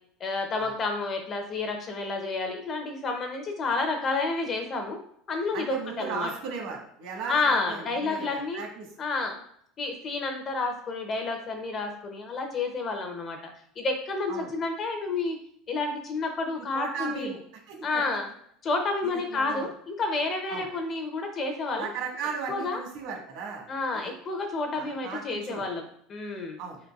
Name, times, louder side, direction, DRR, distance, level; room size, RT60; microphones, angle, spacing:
voice 1, 0.2-5.0 5.3-6.3 7.3-8.6 9.0-9.4 9.8-13.5 13.8-15.4 15.7-17.3 17.8-18.3 18.6-21.9 22.5-22.8 23.7-26.6, left 3 dB, 25° left, 4 dB, 0.5 m, -30 dB
voice 2, 5.5-8.9 14.3-14.5 16.6-17.4 17.7-18.0 19.0-19.7 20.5-20.6 21.8-23.7 23.9-24.1 24.7-25.7 26.6-26.8, right 5 dB, 60° right, 1 dB, 1.3 m, -36 dB
4.4 x 3.8 x 2.3 m, 0.67 s
cardioid pair, 175°, 0 cm